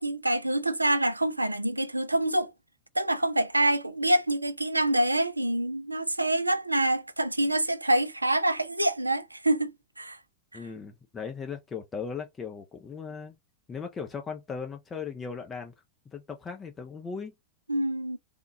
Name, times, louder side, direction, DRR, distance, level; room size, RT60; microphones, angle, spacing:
voice 1, 0.0-2.5 3.0-10.2 17.7-18.2, right 1 dB, 85° right, 0.3 m, -26 dB
voice 2, 10.5-13.4 13.7-15.7 16.1-17.3, left 5 dB, 20° left, 0.6 m, -38 dB
3.6 x 2.3 x 2.8 m
figure-of-eight pair, 90°, 0 cm